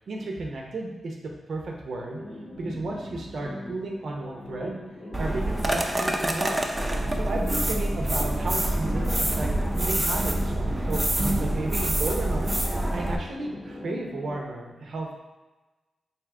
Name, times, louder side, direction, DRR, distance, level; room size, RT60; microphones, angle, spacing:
voice 1, 0.0-2.2 2.6-4.8 5.2-6.7 7.1-9.5 9.7-12.6 12.9-15.1, right 2 dB, 70° right, 0 dB, 0.6 m, -33 dB
sound 1, 2.1-14.4, left 1 dB, 50° left, 0.7 m, -40 dB
sound 2, 5.1-13.2, right 1 dB, 15° right, 0.4 m, -26 dB
3.5 x 2.7 x 3.6 m, 1.2 s
cardioid pair, 85°, 0 cm